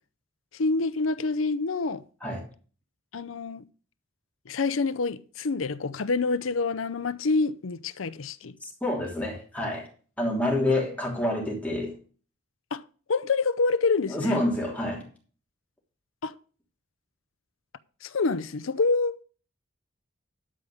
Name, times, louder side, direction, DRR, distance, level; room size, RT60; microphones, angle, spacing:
voice 1, 0.5-2.0 3.1-3.6 4.5-8.6 12.7-12.8 13.1-14.4 16.2-16.4 18.0-19.2, left 3 dB, 85° left, 0.6 m, -27 dB
voice 2, 8.6-9.9 10.2-11.9 14.1-15.0, left 1 dB, 5° left, 3.1 m, -28 dB
12.0 x 5.0 x 7.1 m
head